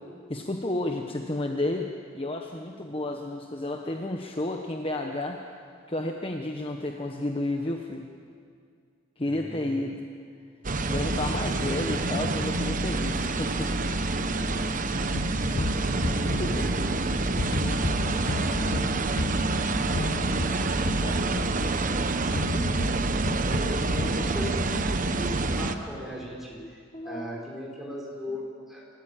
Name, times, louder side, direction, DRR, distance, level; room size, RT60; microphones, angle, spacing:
voice 1, 0.3-1.9 2.1-5.4 5.9-8.1 9.2-10.1 10.9-13.7 16.1-16.8 17.6-18.9 19.5-20.4 20.8-21.8 23.9-24.1 26.6-27.3, left 1 dB, 30° left, 3 dB, 1.1 m, -32 dB
voice 2, 9.2-9.8 11.3-11.4 14.4-14.7 16.3-16.8 23.4-26.8 27.0-28.8, equal, ahead, -3 dB, 5.5 m, -38 dB
sound 1, 10.6-25.7, right 2 dB, 40° right, 1.0 m, -27 dB
sound 2, 15.1-17.1 17.4-21.9 22.3-24.3, left 2 dB, 60° left, 0.9 m, -33 dB
28.0 x 15.0 x 8.9 m, 2.2 s
head